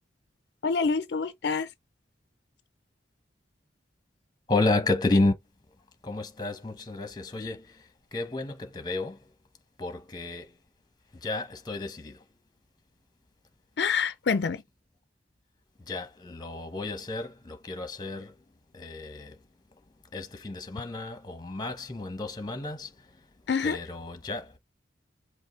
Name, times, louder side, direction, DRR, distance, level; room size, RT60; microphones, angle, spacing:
voice 1, 0.6-1.7 13.8-14.6 23.5-23.8, left 5 dB, 65° left, 0.5 m, -26 dB
voice 2, 4.5-5.3 6.0-9.3 9.8-10.6 11.1-12.2 15.8-18.4 18.7-19.4 19.7-19.8 20.1-23.3 23.6-24.6, left 2 dB, 20° left, 1.0 m, -31 dB
5.4 x 2.2 x 3.9 m
head